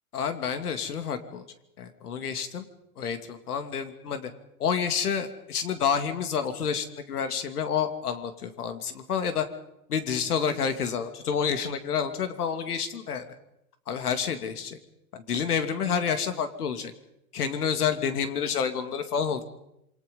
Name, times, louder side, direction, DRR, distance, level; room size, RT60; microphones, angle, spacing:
voice 1, 0.1-1.4 1.8-2.6 3.0-4.3 4.6-9.5 9.9-13.3 13.9-14.8 15.1-16.9 17.3-19.4, left 7 dB, 80° left, 9 dB, 2.7 m, -29 dB
27.5 x 23.5 x 5.4 m, 0.84 s
hypercardioid pair, 115°, 45 cm